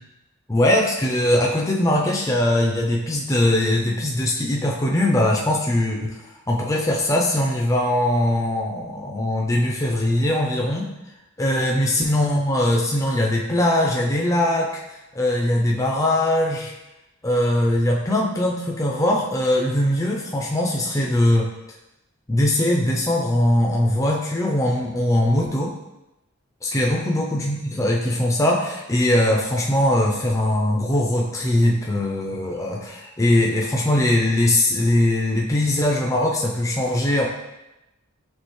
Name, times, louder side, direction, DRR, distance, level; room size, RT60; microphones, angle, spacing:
voice 1, 0.5-10.9 11.4-16.7 17.2-21.5 22.3-25.7 26.6-37.3, left 1 dB, 15° left, -2 dB, 0.4 m, -21 dB
5.3 x 3.2 x 3.1 m, 0.95 s
head